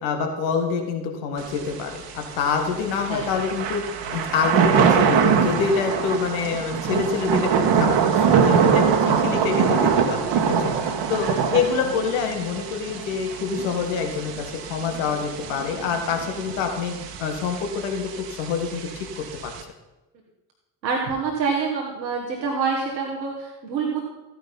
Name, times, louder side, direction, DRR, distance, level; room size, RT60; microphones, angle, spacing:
voice 1, 0.0-16.9 17.2-19.5, left 6 dB, 70° left, 4 dB, 2.1 m, -26 dB
Thunder / Rain, 1.4-19.6, right 7 dB, 55° right, 1.7 m, -24 dB
voice 2, 11.2-12.0 14.8-15.0 20.8-24.0, right 5 dB, 85° right, -1 dB, 1.7 m, -27 dB
14.5 x 10.0 x 5.5 m, 1.0 s
figure-of-eight pair, 50°, 50 cm